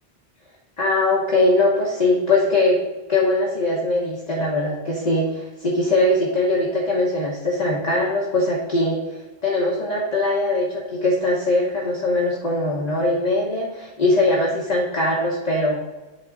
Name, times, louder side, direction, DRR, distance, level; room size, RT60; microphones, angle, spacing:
voice 1, 0.8-2.8 3.1-15.8, left 2 dB, 40° left, -3 dB, 1.0 m, -21 dB
7.7 x 3.7 x 3.9 m, 1.1 s
omnidirectional pair, 1.1 m